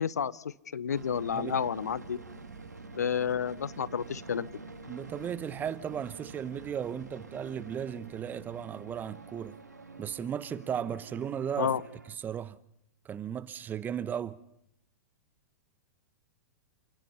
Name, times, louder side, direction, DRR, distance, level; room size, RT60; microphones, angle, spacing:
voice 1, 0.0-2.2 2.9-4.5 11.6-11.8, left 7 dB, 75° left, 0.7 m, -30 dB
sound 1, 0.9-12.2, right 3 dB, 85° right, 2.7 m, -47 dB
voice 2, 4.9-9.6 10.0-11.8 12.2-12.6 13.0-14.4, right 8 dB, 20° right, 0.9 m, -35 dB
28.5 x 18.0 x 5.6 m
figure-of-eight pair, 105°, 9 cm